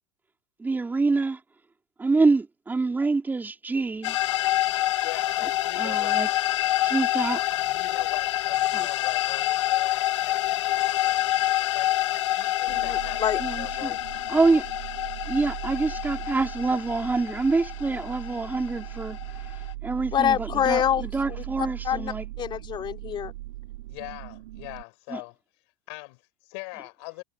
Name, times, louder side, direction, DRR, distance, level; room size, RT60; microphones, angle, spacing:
voice 1, 0.6-1.4 2.0-4.2 5.8-6.3 6.8-7.4 8.7-8.9 13.4-13.9 14.3-14.7 15.3-19.2 19.8-22.3 25.1-25.2, right 3 dB, 10° right, 3.8 m, -26 dB
sound 1, 4.0-19.7, left 15 dB, 85° left, 1.8 m, -27 dB
voice 2, 5.0-6.2 7.6-10.4 10.7-11.2 11.7-12.0 12.3-14.0 23.9-25.4 25.9-27.2, left 31 dB, 65° left, 6.4 m, -41 dB
voice 3, 12.7-13.4 20.1-21.4 21.8-23.3, left 9 dB, 30° left, 3.2 m, -26 dB
sound 2, 12.7-24.8, right 17 dB, 85° right, 4.1 m, -39 dB
supercardioid pair, 125°, 15 cm